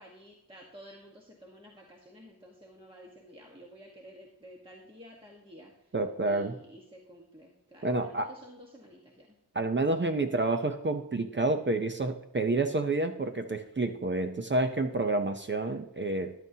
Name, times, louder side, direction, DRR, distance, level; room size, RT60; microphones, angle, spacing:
voice 1, 0.0-5.9 6.2-9.4, equal, 15° right, -1 dB, 1.3 m, -51 dB
voice 2, 5.9-6.6 7.8-8.3 9.5-16.3, right 2 dB, 30° right, 7 dB, 0.6 m, -29 dB
14.5 x 11.0 x 2.8 m, 0.86 s
wide cardioid pair, 170°, 39 cm